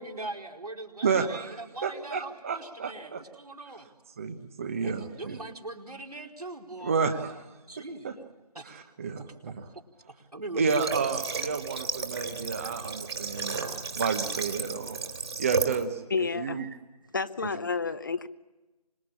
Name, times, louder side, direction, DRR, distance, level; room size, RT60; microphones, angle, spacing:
voice 1, 0.0-3.9 4.8-7.0 7.7-8.3 8.5-8.8 9.2-9.5 10.1-10.9, right 2 dB, 70° right, 2 dB, 4.5 m, -41 dB
voice 2, 1.0-3.2 4.2-5.4 6.8-7.4 8.0-8.1 8.6-9.6 10.6-15.0 15.4-16.7, right 5 dB, 20° right, 7 dB, 1.1 m, -31 dB
Water / Water tap faucet, 10.7-15.8, right 4 dB, 40° right, 3.2 m, -33 dB
voice 3, 16.1-16.6 17.1-18.3, left 5 dB, 30° left, 13 dB, 0.9 m, -30 dB
26.0 x 22.0 x 8.6 m, 1.1 s
figure-of-eight pair, 160°, 20 cm